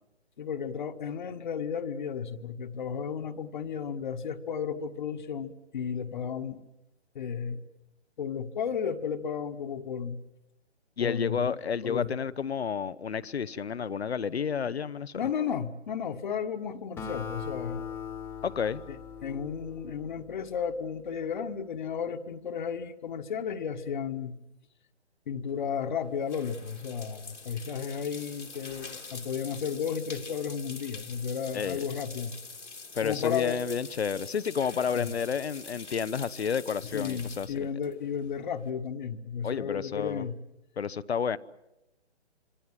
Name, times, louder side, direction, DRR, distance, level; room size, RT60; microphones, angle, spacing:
voice 1, 0.4-6.6 7.1-7.6 8.2-10.2 11.0-11.5 11.8-12.1 15.1-17.8 18.9-24.4 25.3-32.3 33.0-33.6 34.9-35.1 36.9-40.4, left 7 dB, 40° left, 1.5 m, -33 dB
voice 2, 11.0-15.2 18.4-18.8 31.5-31.8 32.9-37.7 39.4-40.2 40.8-41.4, left 7 dB, 65° left, 0.9 m, -31 dB
Acoustic guitar, 17.0-20.6, left 7 dB, 5° left, 1.4 m, -40 dB
sound 1, 25.5-38.7, left 4 dB, 85° left, 2.9 m, -46 dB
26.5 x 25.5 x 7.6 m
figure-of-eight pair, 145°, 35 cm